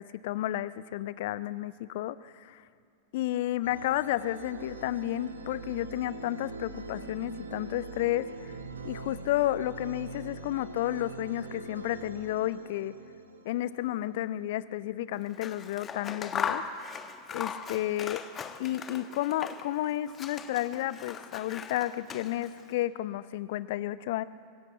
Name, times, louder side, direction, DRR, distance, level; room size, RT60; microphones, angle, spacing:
voice 1, 0.0-2.6 3.1-8.5 8.8-12.9 13.4-16.6 17.3-18.2 18.6-24.2, left 14 dB, 50° left, 16 dB, 0.7 m, -32 dB
sound 1, 3.6-15.0, right 3 dB, 75° right, 1.8 m, -43 dB
Scissors, 15.3-19.8 20.1-22.6, left 6 dB, 25° left, 1.2 m, -38 dB
25.0 x 17.0 x 7.9 m, 2.3 s
figure-of-eight pair, 90°, 0 cm